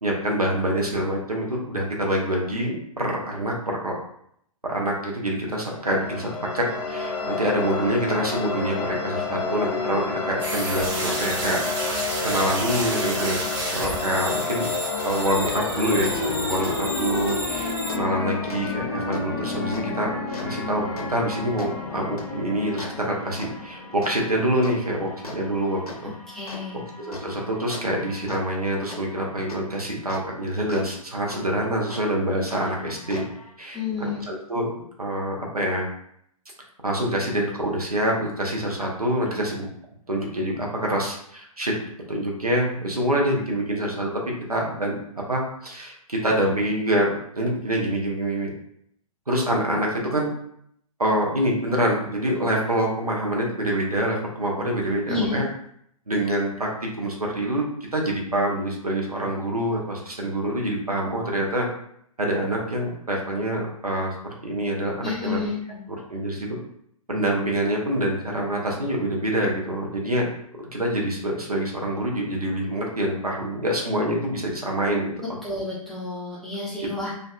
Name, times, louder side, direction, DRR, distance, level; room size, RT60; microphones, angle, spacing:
voice 1, 0.0-3.9 4.6-13.4 13.7-14.7 15.0-20.2 20.4-26.1 27.0-33.2 33.6-35.9 36.8-39.7 40.1-41.7 42.1-44.1 44.5-48.5 49.3-50.3 51.0-55.5 56.1-56.7 57.0-57.7 57.9-61.7 62.2-64.2 64.4-65.4 66.1-66.6 67.1-70.3 70.6-75.1, right 1 dB, 90° right, -1 dB, 0.8 m, -26 dB
sound 1, 5.7-24.3, left 4 dB, 35° left, 0.5 m, -30 dB
sound 2, 10.4-17.9, right 1 dB, 35° right, 1.1 m, -31 dB
sound 3, 16.0-16.2 16.6-16.7 17.3-17.4 17.9-18.0 18.5-18.6 19.1-19.2 19.7-19.8 20.3-30.8 31.3-31.4 31.9-32.0 32.5-33.5, left 2 dB, 80° left, 0.6 m, -41 dB
voice 2, 26.3-26.8 33.7-34.3 55.1-55.4 65.0-65.8 75.4-77.1, left 4 dB, ahead, -9 dB, 0.7 m, -30 dB
2.5 x 2.4 x 2.3 m, 0.70 s
figure-of-eight pair, 120°, 19 cm